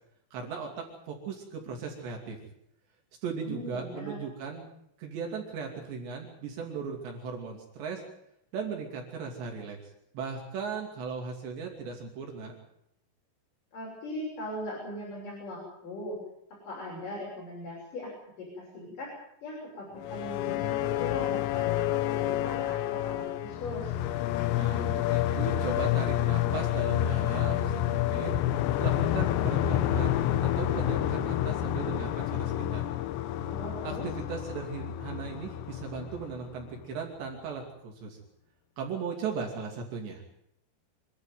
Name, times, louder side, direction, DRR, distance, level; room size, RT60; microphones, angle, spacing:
voice 1, 0.3-2.4 3.2-4.7 5.0-8.0 8.5-12.5 24.6-28.3 28.8-32.8 33.8-38.2 38.8-40.2, right 5 dB, 75° right, 1 dB, 4.9 m, -37 dB
voice 2, 3.4-4.2 13.7-16.2 16.7-18.1 18.4-19.1 19.4-23.9 33.5-34.0, left 1 dB, 45° left, -4 dB, 7.9 m, -39 dB
sound 1, 20.0-36.8, left 12 dB, 80° left, 3.1 m, -29 dB
26.5 x 12.0 x 9.3 m, 0.76 s
omnidirectional pair, 5.1 m